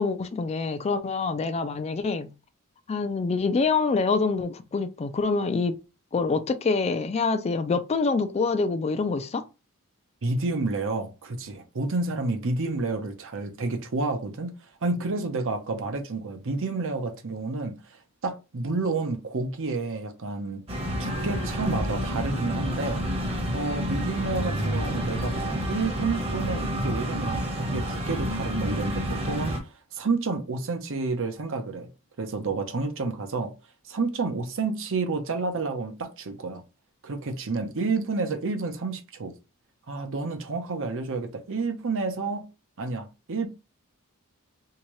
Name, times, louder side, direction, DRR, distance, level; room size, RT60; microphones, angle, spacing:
voice 1, 0.0-2.3 2.9-5.7 6.1-9.4, left 4 dB, 30° left, 0.3 m, -26 dB
voice 2, 10.2-14.5 14.8-17.8 18.2-20.6 21.0-31.9 32.2-33.5 33.9-36.6 37.0-39.3 39.9-42.5 42.8-43.5, right 3 dB, 60° right, 0.8 m, -30 dB
sound 1, 20.7-29.6, equal, 25° right, 1.0 m, -29 dB
3.5 x 2.8 x 3.1 m
head